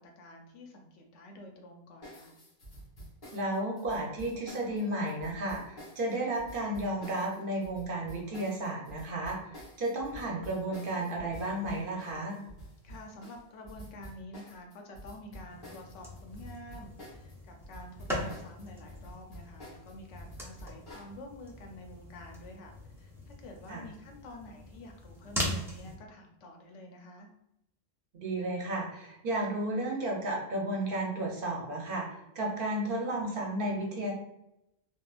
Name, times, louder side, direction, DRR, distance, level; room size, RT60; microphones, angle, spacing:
voice 1, 0.0-2.4 12.8-22.7 23.0-27.3, left 1 dB, 85° left, 3 dB, 1.0 m, -49 dB
sound 1, 2.0-17.3 17.6-21.1, equal, 60° left, 1.4 m, -49 dB
voice 2, 3.3-12.4 23.7-23.9 28.1-34.1, right 1 dB, 55° right, -1 dB, 0.8 m, -33 dB
sound 2, 15.5-26.0, left 1 dB, 5° right, 0.3 m, -41 dB
3.6 x 2.2 x 2.3 m, 0.83 s
omnidirectional pair, 1.2 m